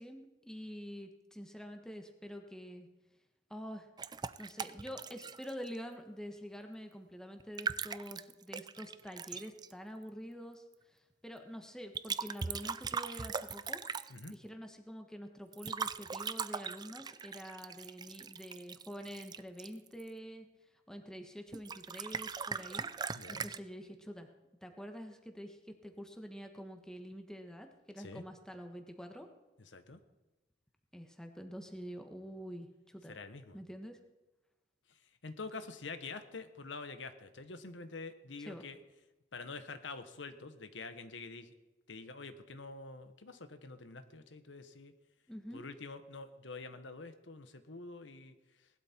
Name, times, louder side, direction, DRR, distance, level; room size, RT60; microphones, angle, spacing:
voice 1, 0.0-2.9 3.5-3.9 4.4-10.6 11.2-13.8 14.3-20.5 20.9-24.3 24.6-25.6 25.8-29.3 30.9-33.2 33.5-34.0 38.5-38.7 45.3-45.7, equal, 5° left, 5 dB, 1.4 m, -47 dB
sound 1, 4.0-5.8 7.4-9.7 11.9-14.3 15.5-20.1 21.5-23.6, right 5 dB, 20° right, 0.4 m, -40 dB
voice 2, 29.6-30.0 33.1-33.6 34.9-35.0 35.2-38.8 39.3-41.5 41.9-44.9 45.5-48.3, left 3 dB, 90° left, 9 dB, 1.2 m, -46 dB
18.5 x 12.0 x 4.5 m, 1.1 s
head